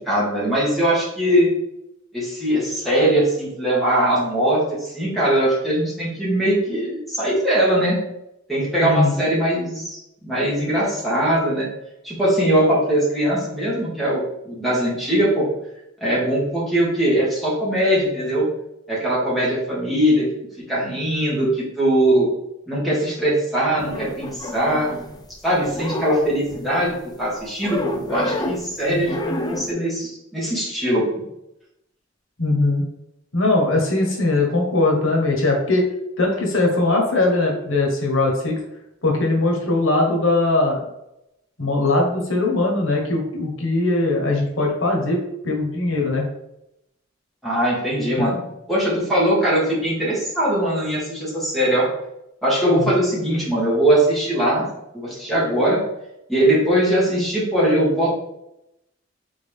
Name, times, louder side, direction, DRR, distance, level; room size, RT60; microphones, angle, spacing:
voice 1, 0.1-1.5 2.1-8.0 8.5-10.0 10.2-11.7 12.0-15.5 16.0-18.5 18.9-20.2 20.7-22.3 22.7-25.0 25.4-31.2 47.4-48.4 48.7-51.9 52.4-54.7 54.9-55.8 56.3-58.1, right 1 dB, ahead, -7 dB, 1.6 m, -21 dB
voice 2, 8.8-9.2 28.9-29.0 32.4-32.8 33.3-35.9 36.2-38.6 39.0-40.9 41.6-45.2 45.4-46.2 48.2-48.3 52.8-52.9, left 2 dB, 85° left, 1 dB, 1.1 m, -20 dB
sound 1, 23.8-25.3 25.6-26.9 27.6-28.7 29.0-29.7, left 1 dB, 20° left, 0.5 m, -29 dB
3.9 x 3.7 x 3.5 m, 0.84 s
head